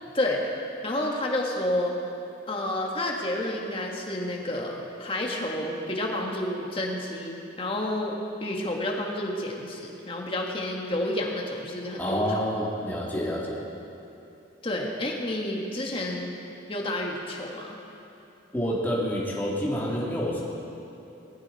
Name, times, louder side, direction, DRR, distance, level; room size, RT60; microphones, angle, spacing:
voice 1, 0.1-0.5 0.8-1.9 2.5-12.4 14.6-16.4 16.7-17.8, left 1 dB, 30° left, -1 dB, 1.7 m, -30 dB
voice 2, 12.0-13.6 18.5-20.4, equal, 10° left, -5 dB, 2.3 m, -28 dB
19.5 x 14.0 x 4.3 m, 3.0 s
head